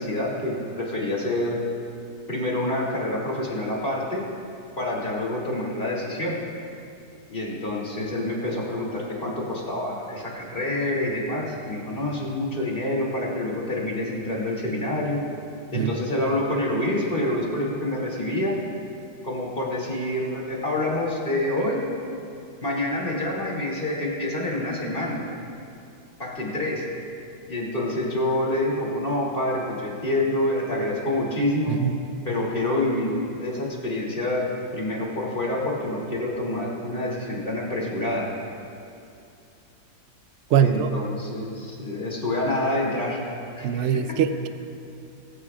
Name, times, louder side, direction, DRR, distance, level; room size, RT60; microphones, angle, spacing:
voice 1, 0.0-1.6 2.3-4.2 4.8-6.4 7.3-15.2 15.7-18.5 19.2-21.8 22.6-25.2 26.2-26.8 27.5-31.8 32.2-38.3 40.6-43.2 43.6-43.9, left 1 dB, 30° left, -4 dB, 2.8 m, -27 dB
voice 2, 31.7-32.0 40.5-40.9 43.6-44.5, right 8 dB, 85° right, 10 dB, 0.6 m, -22 dB
23.0 x 14.5 x 2.4 m, 2.6 s
omnidirectional pair, 2.0 m